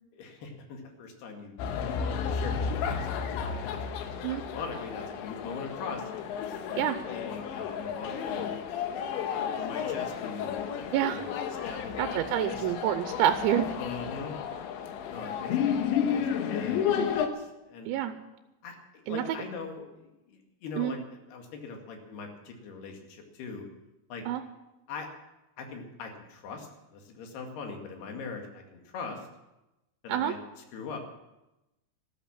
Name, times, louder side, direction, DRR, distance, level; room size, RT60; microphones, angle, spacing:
voice 1, 0.1-1.6 2.0-3.8 4.4-6.1 6.7-9.1 9.4-12.6 13.8-14.4 15.1-17.9 18.6-21.0 21.3-23.6 24.1-24.2 24.9-25.1 25.6-29.3 30.0-30.4 30.7-31.0, left 4 dB, 65° left, 3 dB, 4.0 m, -41 dB
sound 1, 1.6-17.3, left 7 dB, 85° left, 3.5 m, -32 dB
voice 2, 12.0-13.7 17.9-18.1 19.1-19.2 20.8-20.9 24.3-24.4 30.1-30.3, right 11 dB, 90° right, 9 dB, 3.1 m, -27 dB
14.0 x 13.0 x 7.3 m, 0.97 s
omnidirectional pair, 5.2 m